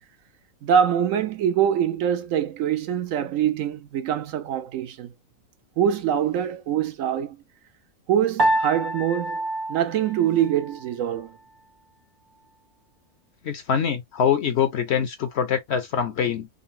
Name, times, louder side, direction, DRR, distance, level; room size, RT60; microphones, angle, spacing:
voice 1, 0.6-5.1 5.8-7.4 8.1-9.4 9.7-11.4, right 9 dB, 70° right, 0.9 m, -24 dB
Piano, 8.4-10.9, right 2 dB, 30° right, 0.5 m, -27 dB
voice 2, 13.4-16.5, left 8 dB, 60° left, 0.8 m, -24 dB
3.8 x 2.0 x 2.5 m
omnidirectional pair, 1.5 m